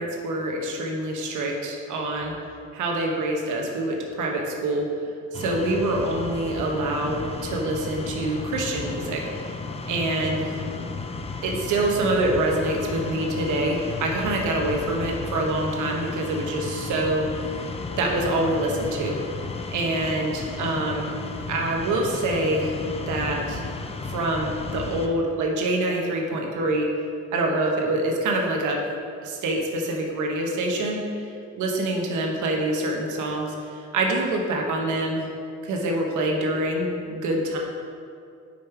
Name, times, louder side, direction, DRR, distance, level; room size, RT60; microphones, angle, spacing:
voice 1, 0.0-2.3 2.7-9.2 9.9-10.7 11.4-17.6 18.0-19.2 19.7-21.1 21.5-22.8 23.1-23.6 24.1-26.9 27.3-28.8 29.2-31.3 31.6-35.3 35.6-37.6, right 1 dB, 80° right, 0 dB, 1.0 m, -26 dB
sound 1, 5.3-25.1, left 4 dB, 20° left, 0.5 m, -34 dB
5.2 x 5.2 x 4.6 m, 2.4 s
cardioid pair, 90°, 30 cm